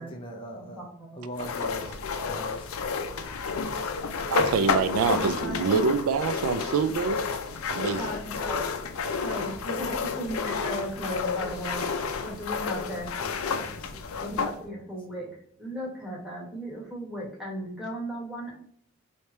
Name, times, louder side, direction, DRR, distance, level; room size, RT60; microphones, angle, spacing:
voice 1, 0.0-0.8 1.1-1.9 2.3-2.7 13.2-14.3, equal, 25° left, 0.5 m, -41 dB
voice 2, 0.5-1.2 5.1-5.8 8.0-8.6 9.2-11.8 12.2-13.1 14.2-15.3 15.6-18.5, equal, 5° right, 1.2 m, -36 dB
sound 1, 1.4-14.6, left 5 dB, 80° left, 0.4 m, -31 dB
voice 3, 4.3-7.2 7.7-8.0, right 5 dB, 85° right, 0.4 m, -26 dB
3.3 x 2.8 x 4.3 m
head